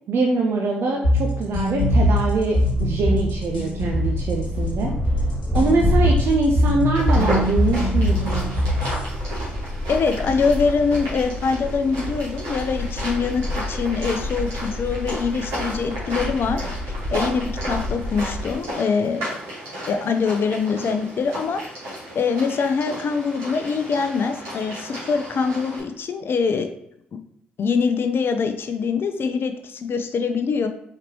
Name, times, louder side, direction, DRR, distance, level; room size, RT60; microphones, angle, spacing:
voice 1, 0.1-4.9 5.5-8.6, right 3 dB, 55° right, 1 dB, 0.6 m, -23 dB
sound 1, 1.0-9.0, left 1 dB, 90° left, 1.2 m, -21 dB
sound 2, 1.5-18.6, left 1 dB, 5° left, 1.0 m, -29 dB
sound 3, 6.9-25.8, equal, 75° right, 1.7 m, -34 dB
voice 2, 9.9-16.6 17.1-19.3 19.9-21.6 22.1-26.7 27.6-30.7, left 5 dB, 50° left, 7 dB, 0.5 m, -23 dB
4.4 x 3.9 x 3.0 m, 0.76 s
figure-of-eight pair, 40°, 5 cm